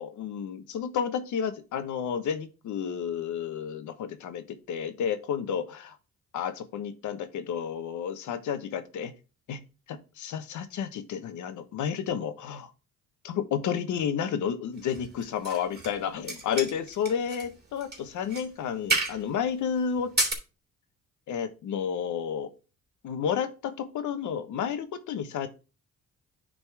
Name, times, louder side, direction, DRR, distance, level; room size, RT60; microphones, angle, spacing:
voice 1, 0.0-5.9 6.3-9.1 9.5-9.6 9.9-12.7 13.2-20.1 21.3-22.5 23.0-25.5, left 8 dB, 75° left, 10 dB, 1.2 m, -31 dB
sound 1, 14.9-16.0 16.2-17.5 17.8-18.0 18.3-18.5 18.9-19.2 20.0-20.3, right 3 dB, 35° right, 3.1 m, -30 dB
10.0 x 4.0 x 4.7 m, 0.32 s
cardioid pair, 90°, 30 cm